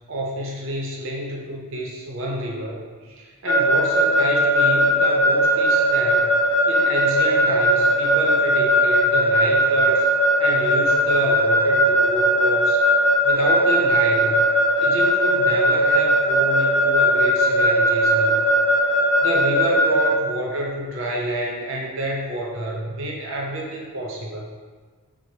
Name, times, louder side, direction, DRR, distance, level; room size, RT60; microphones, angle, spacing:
voice 1, 0.1-6.3 6.7-10.0 10.4-12.8 13.2-14.4 14.8-18.4 19.2-24.5, right 1 dB, 60° right, -2 dB, 0.6 m, -28 dB
Keyboard (musical) / Alarm, 3.5-20.1, equal, 55° left, 0.8 m, -18 dB
4.6 x 2.1 x 2.8 m, 1.5 s
head